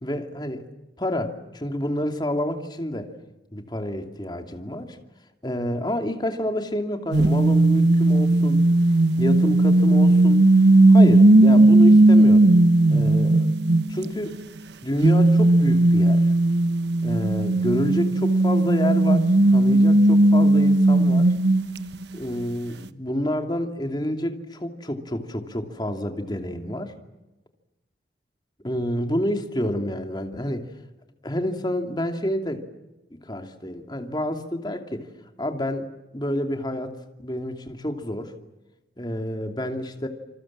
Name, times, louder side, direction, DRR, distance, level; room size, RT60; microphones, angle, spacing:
voice 1, 0.0-0.6 1.0-3.1 3.5-5.0 5.4-8.6 9.2-10.4 10.9-12.5 12.9-13.5 13.9-14.4 14.8-16.3 17.0-21.3 22.1-26.9 28.6-30.7 31.2-32.7 33.1-35.1 35.4-35.9 36.1-38.3 39.0-40.1, left 1 dB, 25° left, 5 dB, 2.7 m, -28 dB
sound 1, 7.1-14.3 15.0-22.2, right 2 dB, 75° right, 1.2 m, -17 dB
28.0 x 27.0 x 7.5 m, 1.0 s
head